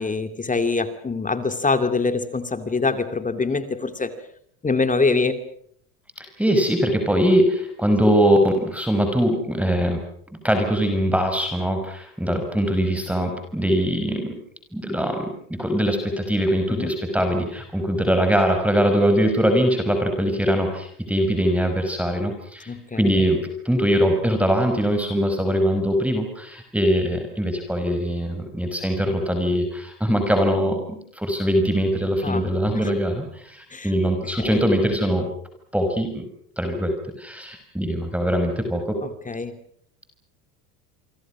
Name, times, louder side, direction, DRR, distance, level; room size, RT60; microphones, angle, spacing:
voice 1, 0.0-4.1 4.6-5.4 16.7-16.9 22.7-23.1 32.2-32.5 33.7-34.6 39.0-39.6, left 4 dB, 15° left, 9 dB, 2.6 m, -24 dB
voice 2, 6.2-10.0 10.4-14.3 14.7-35.3 35.7-36.2 36.6-39.0, equal, 5° right, 5 dB, 5.7 m, -22 dB
28.0 x 24.0 x 6.2 m, 0.66 s
hypercardioid pair, 95°, 46 cm